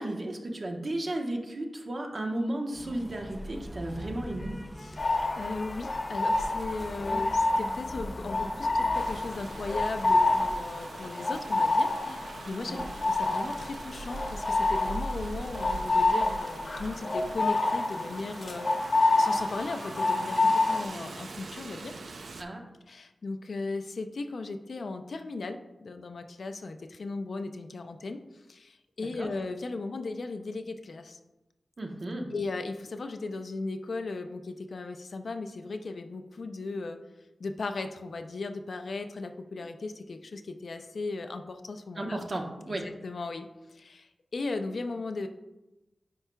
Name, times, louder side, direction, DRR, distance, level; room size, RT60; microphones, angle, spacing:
voice 1, 0.0-4.5 7.1-7.2 12.7-12.8 22.4-22.6 29.0-29.3 31.8-32.3 42.0-42.9, right 1 dB, 50° right, 2 dB, 1.0 m, -34 dB
sound 1, 2.7-10.6, equal, 5° left, 0.5 m, -42 dB
voice 2, 4.8-12.8 13.1-18.7 19.2-21.9 22.9-28.2 28.5-31.2 32.3-37.0 37.4-42.2 42.7-45.3, left 3 dB, 70° left, 7 dB, 0.5 m, -37 dB
sound 2, 5.0-20.9, left 2 dB, 55° left, 1.0 m, -28 dB
Rain, 8.9-22.4, right 2 dB, 80° right, 0.5 m, -42 dB
9.9 x 4.8 x 2.3 m, 0.99 s
wide cardioid pair, 95°, 0 cm